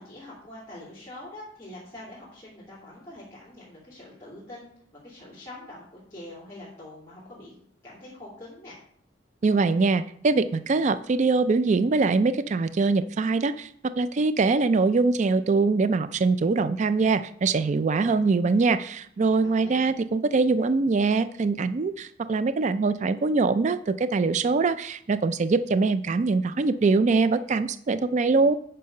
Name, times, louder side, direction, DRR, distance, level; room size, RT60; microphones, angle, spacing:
voice 1, 0.0-4.7 5.0-7.6 7.8-8.8 19.4-19.9, left 1 dB, 15° left, -7 dB, 2.9 m, -44 dB
voice 2, 9.4-28.6, right 4 dB, 40° right, 13 dB, 0.3 m, -23 dB
9.3 x 5.4 x 5.3 m, 0.63 s
head